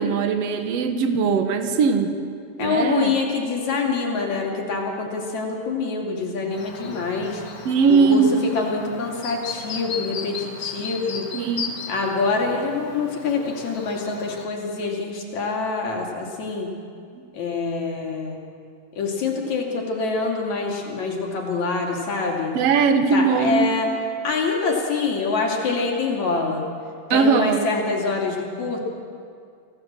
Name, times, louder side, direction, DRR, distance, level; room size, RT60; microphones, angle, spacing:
voice 1, 0.0-2.2 2.6-3.1 7.7-8.4 11.3-11.8 22.6-23.7 27.1-27.6, right 5 dB, 55° right, 7 dB, 2.2 m, -20 dB
voice 2, 2.6-7.4 7.9-11.3 11.9-16.7 17.3-18.4 18.9-22.5 23.1-23.9 24.2-26.6 27.1-28.8, left 4 dB, 60° left, 0 dB, 3.8 m, -25 dB
Chirp tweet, 6.5-14.5, left 6 dB, 80° left, 0.8 m, -36 dB
25.5 x 16.0 x 7.5 m, 2.3 s
omnidirectional pair, 3.7 m